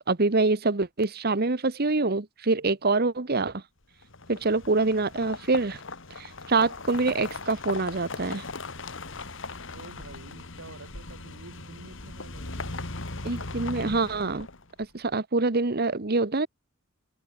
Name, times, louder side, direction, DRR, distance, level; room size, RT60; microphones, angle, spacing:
voice 1, 0.1-3.6 4.3-5.8 6.2-8.4 13.2-14.5 14.9-16.5, right 3 dB, 45° right, 1.1 m, -25 dB
sound 1, 4.0-14.8, left 3 dB, 60° left, 2.5 m, -38 dB
voice 2, 9.7-12.9, right 2 dB, 75° right, 3.0 m, -48 dB
head